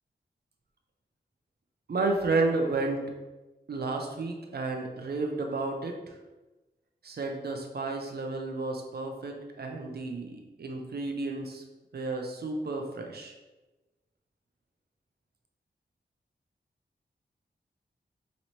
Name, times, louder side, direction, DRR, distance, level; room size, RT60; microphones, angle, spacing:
voice 1, 1.9-3.0 3.7-5.9 7.0-11.6 11.9-13.3, right 3 dB, 60° right, 2 dB, 0.6 m, -31 dB
4.1 x 3.1 x 3.0 m, 1.1 s
cardioid pair, 55°, 18 cm